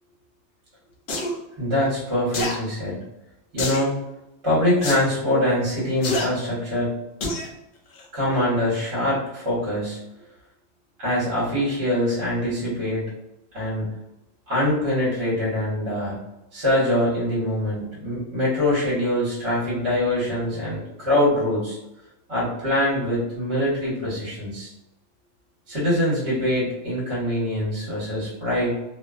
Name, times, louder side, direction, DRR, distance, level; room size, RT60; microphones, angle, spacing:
sound 1, 1.1-1.3 2.3-2.6 3.6-3.9 4.8-5.0 6.0-6.3 7.2-7.5 8.0-8.1, left 2 dB, 60° left, 0.5 m, -26 dB
voice 1, 1.6-3.0 3.5-3.9 4.4-6.9 8.1-10.0 11.0-13.0 13.5-13.9 14.5-16.2 16.5-21.8 22.3-24.7 25.7-28.8, left 1 dB, 55° right, -7 dB, 1.3 m, -24 dB
2.6 x 2.2 x 2.3 m, 0.92 s
omnidirectional pair, 1.3 m